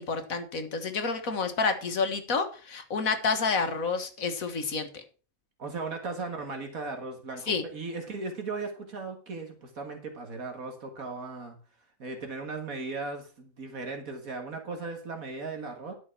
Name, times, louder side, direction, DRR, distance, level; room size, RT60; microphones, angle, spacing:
voice 1, 0.0-5.0 7.5-7.6, left 4 dB, 70° left, 7 dB, 1.9 m, -29 dB
voice 2, 5.6-11.6 12.0-15.9, right 3 dB, 70° right, 4 dB, 2.1 m, -37 dB
11.0 x 6.2 x 5.9 m, 0.36 s
omnidirectional pair, 1.5 m